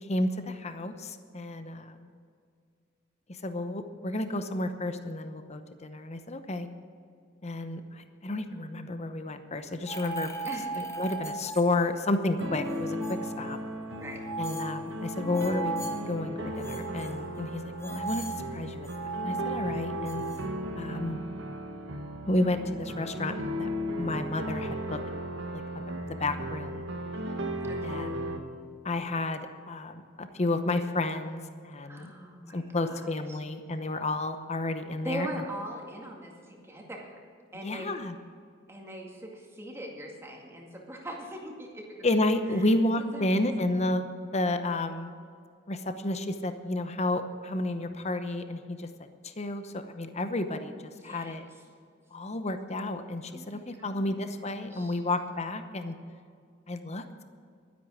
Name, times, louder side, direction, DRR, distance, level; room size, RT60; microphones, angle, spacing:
voice 1, 0.0-2.1 3.4-6.7 7.4-10.3 10.8-13.6 14.4-15.7 16.1-18.9 19.2-20.2 20.7-21.2 22.3-23.7 24.0-25.0 25.5-26.8 27.8-28.1 28.8-32.1 32.5-35.3 37.6-38.1 42.0-44.0 44.3-45.1 45.7-48.9 49.2-51.4 52.1-55.9 56.7-57.2, left 2 dB, 35° left, 9 dB, 0.8 m, -31 dB
sound 1, 9.9-12.2 12.4-13.3 13.9-16.0 16.5-20.5, right 3 dB, 15° left, 1.4 m, -37 dB
sound 2, 12.4-28.4, equal, 65° right, 1.4 m, -36 dB
voice 2, 27.7-28.2 31.8-33.4 35.0-37.2 37.5-37.9 38.7-42.0 42.5-42.7 43.1-43.5 50.9-51.4 53.3-54.4 54.6-55.0, right 1 dB, 15° right, 0 dB, 2.1 m, -41 dB
12.0 x 10.5 x 7.4 m, 2.2 s
head